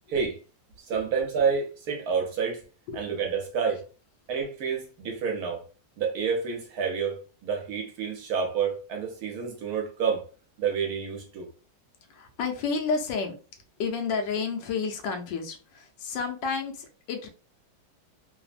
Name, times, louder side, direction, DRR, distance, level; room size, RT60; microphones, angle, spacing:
voice 1, 0.9-2.6 2.9-3.8 4.3-5.7 6.0-10.2 10.6-11.5, right 6 dB, 65° right, 1 dB, 1.1 m, -29 dB
voice 2, 12.1-13.4 13.8-17.3, left 5 dB, 90° left, 4 dB, 1.3 m, -31 dB
3.3 x 2.1 x 2.4 m, 0.35 s
omnidirectional pair, 1.9 m